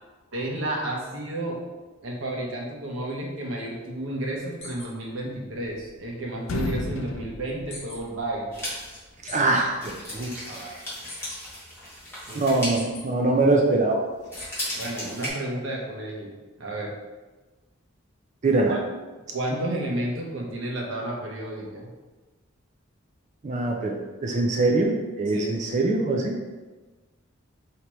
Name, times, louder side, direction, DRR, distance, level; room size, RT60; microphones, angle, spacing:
voice 1, 0.3-1.6 2.0-8.5 12.3-12.6 14.7-16.3 16.6-16.9 18.7-18.8 19.3-21.9 25.3-25.5, right 1 dB, 65° right, -2 dB, 0.9 m, -31 dB
sound 1, 4.6-4.9 7.7-8.0 9.3-9.4 11.1-11.4 12.7-13.0 14.4-14.6, left 2 dB, 30° left, 0.9 m, -40 dB
sound 2, 5.3-6.1 6.4-8.5, left 3 dB, 70° left, 0.4 m, -33 dB
sound 3, 8.5-13.8 14.2-15.3, equal, 10° left, 1.2 m, -36 dB
voice 2, 9.2-10.8 12.4-14.0 18.4-18.8 23.4-26.4, right 2 dB, 35° right, 0 dB, 0.4 m, -23 dB
4.7 x 2.8 x 3.0 m, 1.2 s
head